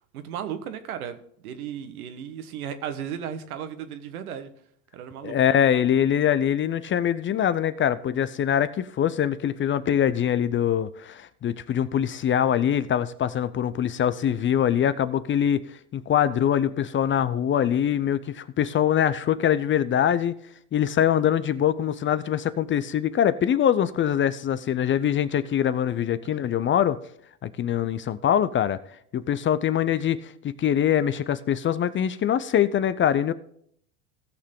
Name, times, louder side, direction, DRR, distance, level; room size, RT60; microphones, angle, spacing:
voice 1, 0.1-1.2 1.4-4.5 4.9-5.4, right 8 dB, 80° right, 9 dB, 1.4 m, -35 dB
voice 2, 5.2-15.6 15.9-20.4 20.7-27.0 27.4-28.8 29.1-33.3, left 9 dB, 30° left, 15 dB, 0.6 m, -23 dB
17.0 x 6.5 x 3.7 m, 0.67 s
hypercardioid pair, 90°, 43 cm